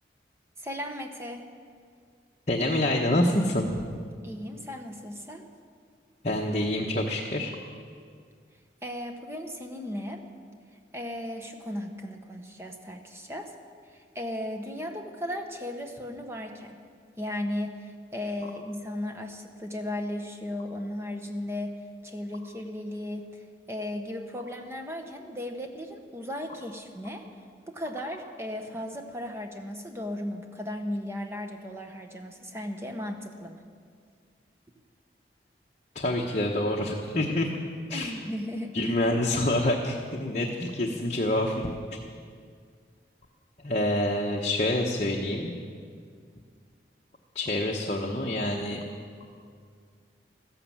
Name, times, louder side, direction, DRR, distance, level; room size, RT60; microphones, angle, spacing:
voice 1, 0.6-1.4 4.2-5.4 8.8-10.2 10.9-13.5 13.9-16.8 17.2-21.7 22.0-27.3 27.7-33.6 37.9-38.7, left 1 dB, 15° right, 4 dB, 1.1 m, -36 dB
voice 2, 2.5-3.7 6.2-7.5 35.9-37.5 37.9-38.1 38.7-41.6 43.6-45.5 47.3-48.8, left 1 dB, 40° left, -1 dB, 1.0 m, -27 dB
14.0 x 11.5 x 7.4 m, 2.1 s
head